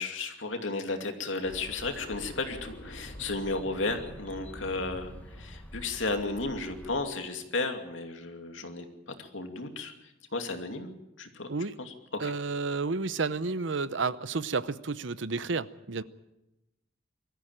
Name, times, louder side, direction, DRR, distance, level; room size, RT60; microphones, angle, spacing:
voice 1, 0.0-9.9 10.3-10.9 11.2-11.5 11.8-11.9 12.2-12.3, left 3 dB, 85° left, 5 dB, 2.6 m, -34 dB
sound 1, 1.4-7.0, equal, 10° left, 1.7 m, -48 dB
sound 2, 2.0-7.2, left 1 dB, 45° left, 3.4 m, -49 dB
voice 2, 12.2-16.0, right 4 dB, 70° right, 15 dB, 0.8 m, -31 dB
22.5 x 14.0 x 8.9 m, 0.95 s
head